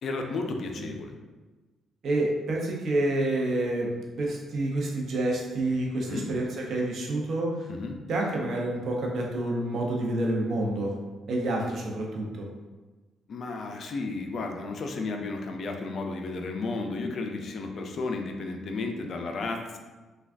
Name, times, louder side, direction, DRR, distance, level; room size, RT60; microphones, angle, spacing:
voice 1, 0.0-1.1 6.1-6.3 7.7-8.0 13.3-19.8, left 3 dB, 55° left, 3 dB, 0.4 m, -33 dB
voice 2, 2.0-3.9 4.2-7.7 8.1-10.9 11.3-12.5, right 1 dB, 60° right, -1 dB, 0.6 m, -28 dB
3.3 x 2.3 x 2.4 m, 1.2 s
cardioid pair, 90°, 0 cm